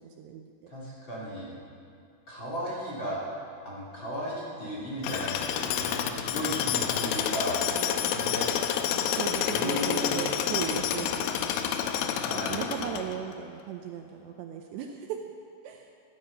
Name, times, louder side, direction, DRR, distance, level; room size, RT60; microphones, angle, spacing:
voice 1, 0.0-0.7 7.7-8.3 8.9-11.3 12.0-15.2 15.6-15.9, right 9 dB, 80° right, 3 dB, 2.6 m, -37 dB
voice 2, 0.7-1.5 2.3-3.2 3.6-7.6 8.1-8.5 9.5-10.2 12.2-12.5, equal, 25° left, -7 dB, 3.2 m, -35 dB
Tools, 5.0-13.3, left 9 dB, 85° left, 3.2 m, -29 dB
20.0 x 13.0 x 5.5 m, 2.4 s
omnidirectional pair, 5.8 m